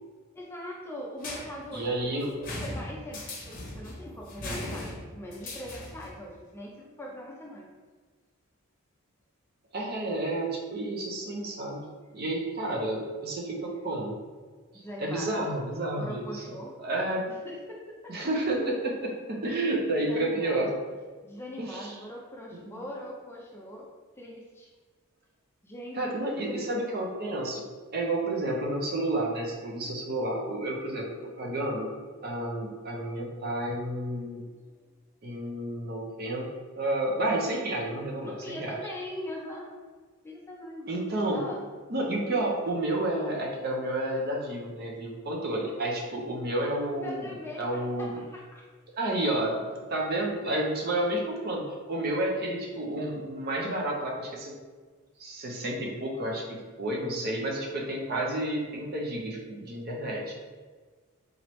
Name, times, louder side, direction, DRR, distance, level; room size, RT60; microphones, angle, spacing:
voice 1, 0.3-7.7 11.4-11.6 13.5-13.6 14.7-15.5 16.0-16.7 17.3-18.1 20.0-20.7 21.2-23.9 24.2-24.7 25.6-26.9 34.7-34.8 38.2-39.7 40.2-40.9 41.3-41.7 46.9-48.6, equal, 10° left, -2 dB, 0.4 m, -41 dB
sound 1, 1.2-6.2, left 1 dB, 40° left, 0.9 m, -39 dB
voice 2, 1.7-2.3 9.7-14.2 14.7-17.2 18.1-20.7 21.6-22.0 22.5-22.8 26.0-27.6 27.9-31.0 31.4-31.9 32.2-34.4 35.2-36.5 36.8-38.8 40.9-41.4 41.9-47.2 47.6-48.2 48.9-54.5 55.2-60.3, right 1 dB, 45° right, -1 dB, 0.7 m, -30 dB
3.9 x 3.1 x 3.1 m, 1.5 s
head